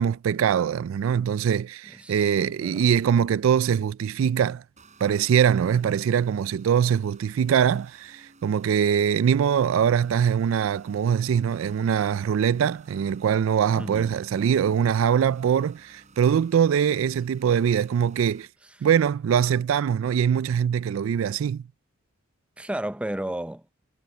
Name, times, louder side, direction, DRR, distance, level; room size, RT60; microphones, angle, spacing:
voice 1, 0.0-4.6 5.0-18.5 18.8-21.6, right 8 dB, 70° right, 0.3 m, -23 dB
voice 2, 2.0-2.9 13.8-14.2 22.6-23.7, right 1 dB, 5° right, 0.5 m, -33 dB
sound 1, 4.8-18.5, right 3 dB, 35° right, 7.2 m, -56 dB
head